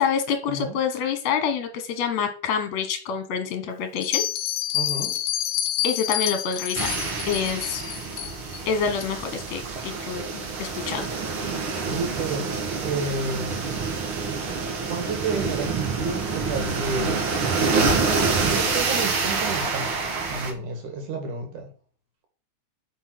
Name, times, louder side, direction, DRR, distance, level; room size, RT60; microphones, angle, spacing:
voice 1, 0.0-4.2 5.8-6.9 7.3-7.8 8.7-10.2 10.6-11.1, left 7 dB, 65° left, 7 dB, 2.4 m, -27 dB
Bell, 4.0-8.6, left 12 dB, 85° left, 2.1 m, -28 dB
voice 2, 4.7-5.2 11.8-12.5 12.8-13.6 14.9-17.2 17.6-18.1 18.4-19.9 20.3-21.7, right 3 dB, 75° right, 4 dB, 3.7 m, -30 dB
sound 1, 6.7-20.5, right 4 dB, 50° right, 2.0 m, -27 dB
9.2 x 6.3 x 6.0 m, 0.39 s
omnidirectional pair, 3.6 m